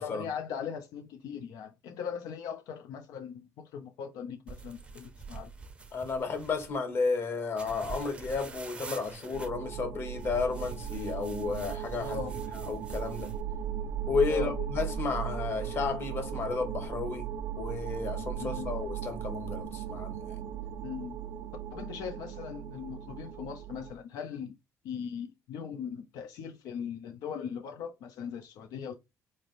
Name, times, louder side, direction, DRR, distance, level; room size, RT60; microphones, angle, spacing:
voice 1, 0.0-5.5 11.3-11.5 12.0-12.3 14.3-14.6 18.4-18.7 20.8-21.2 21.7-24.5 24.8-29.0, left 7 dB, 75° left, 0.5 m, -39 dB
sound 1, 4.5-6.8 7.6-9.5 10.2-13.4, right 4 dB, 15° right, 0.6 m, -44 dB
voice 2, 5.9-12.2 12.7-13.3 14.1-17.2 17.6-20.4, left 4 dB, 40° left, 1.1 m, -32 dB
sound 2, 9.3-23.9, right 9 dB, 80° right, 0.6 m, -37 dB
4.1 x 3.2 x 2.5 m
cardioid pair, 170°, 6 cm